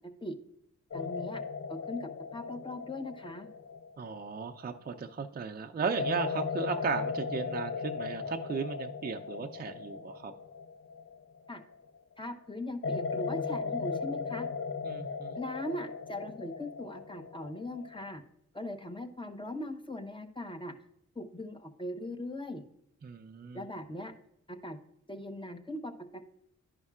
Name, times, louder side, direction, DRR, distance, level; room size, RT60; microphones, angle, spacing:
sound 1, 0.9-5.1 6.0-12.0 12.8-18.2, left 5 dB, 45° left, 0.5 m, -37 dB
voice 1, 0.9-1.4 1.7-3.5 11.5-11.6 12.2-14.5 15.4-18.2 18.5-20.7 21.1-22.6 23.5-24.1 24.5-24.8 25.1-26.2, left 1 dB, 15° left, 7 dB, 1.0 m, -40 dB
voice 2, 4.0-10.3 14.8-15.4 23.0-23.6, right 5 dB, 30° right, 5 dB, 0.5 m, -36 dB
11.0 x 5.2 x 2.4 m, 0.76 s
cardioid pair, 50°, 30 cm